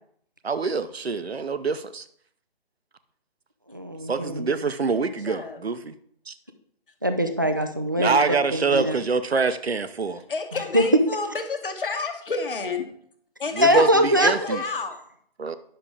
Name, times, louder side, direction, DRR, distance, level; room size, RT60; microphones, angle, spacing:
voice 1, 0.4-2.0 4.1-5.9 6.3-6.4 8.0-10.2 13.6-14.6 15.4-15.6, right 4 dB, 75° right, 12 dB, 0.8 m, -25 dB
voice 2, 3.7-4.5 7.0-9.0 10.7-10.8 13.6-14.3, equal, 20° right, 6 dB, 0.4 m, -22 dB
voice 3, 5.0-5.6 10.1-12.9 13.4-14.9, left 4 dB, 55° left, 6 dB, 1.4 m, -31 dB
10.0 x 6.5 x 3.4 m, 0.66 s
figure-of-eight pair, 140°, 31 cm